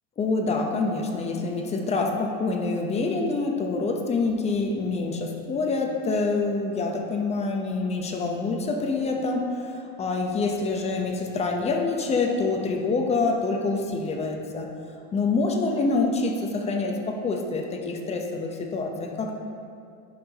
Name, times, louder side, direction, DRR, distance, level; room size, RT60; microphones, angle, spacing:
voice 1, 0.2-14.7 15.1-19.4, left 3 dB, 20° left, 2 dB, 0.8 m, -26 dB
11.0 x 5.7 x 2.9 m, 2.5 s
supercardioid pair, 135°, 31 cm